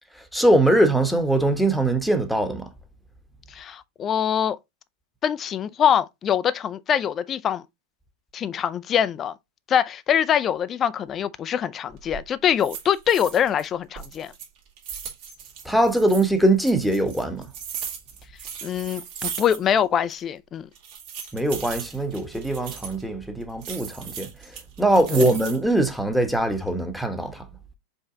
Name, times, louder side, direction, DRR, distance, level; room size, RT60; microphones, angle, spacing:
voice 1, 0.3-2.6 15.6-17.4 21.3-24.3 24.8-27.4, right 1 dB, ahead, 1.2 m, -21 dB
voice 2, 3.5-4.6 5.2-7.6 8.3-9.3 9.7-14.3 18.6-20.7 25.0-25.2, left 9 dB, 25° left, 0.5 m, -24 dB
sound 1, 11.9-12.2 12.6-13.7 13.9-16.3 16.7-19.8 20.1-20.2 20.7-23.0 23.6-25.7 26.2-26.7, right 7 dB, 50° right, 2.3 m, -37 dB
5.4 x 4.5 x 3.8 m
figure-of-eight pair, 90°, 0 cm